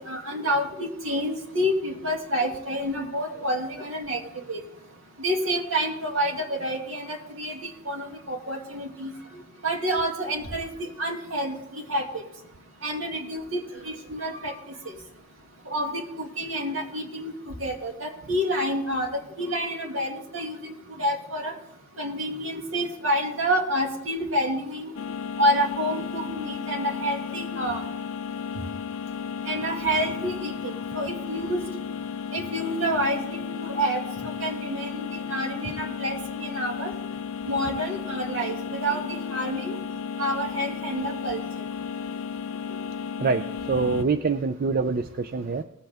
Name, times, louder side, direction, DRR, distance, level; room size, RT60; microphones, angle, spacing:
voice 1, 0.1-4.2 4.5-4.6 5.2-10.7 11.0-12.0 12.8-14.5 14.9-15.0 15.7-19.1 19.4-21.5 22.0-24.9 25.4-27.8 29.5-31.6 32.3-34.0 34.4-36.9 37.5-39.0 39.3-39.8 40.2-41.4, equal, 70° right, 1 dB, 2.3 m, -28 dB
sound 1, 24.9-44.0, left 7 dB, 75° left, 0.4 m, -34 dB
voice 2, 43.2-45.6, right 4 dB, 45° right, 10 dB, 0.4 m, -25 dB
19.0 x 7.9 x 3.5 m, 0.84 s
head